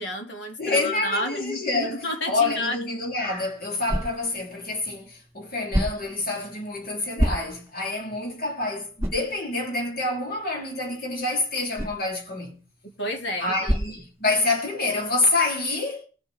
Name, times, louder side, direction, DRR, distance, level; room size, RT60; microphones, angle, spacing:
voice 1, 0.0-2.8 12.8-13.7, left 1 dB, 90° left, 2.5 m, -31 dB
voice 2, 0.6-12.6 13.4-16.1, left 2 dB, 60° left, 3.3 m, -27 dB
sound 1, 3.0-14.8, equal, 15° right, 2.7 m, -33 dB
20.0 x 7.1 x 3.5 m
head